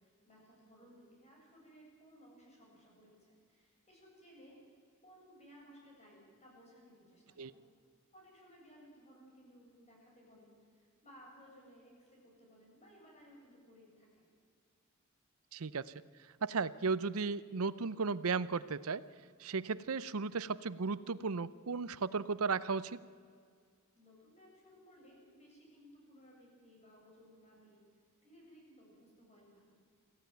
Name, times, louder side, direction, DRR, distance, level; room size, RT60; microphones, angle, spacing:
voice 1, 0.0-4.8 5.0-7.7 8.1-14.3 23.9-29.7, equal, 30° left, -2 dB, 7.7 m, -60 dB
voice 2, 15.5-15.8 16.4-19.0 19.4-23.0, right 4 dB, 80° right, 17 dB, 0.7 m, -35 dB
23.5 x 15.0 x 9.3 m, 2.1 s
head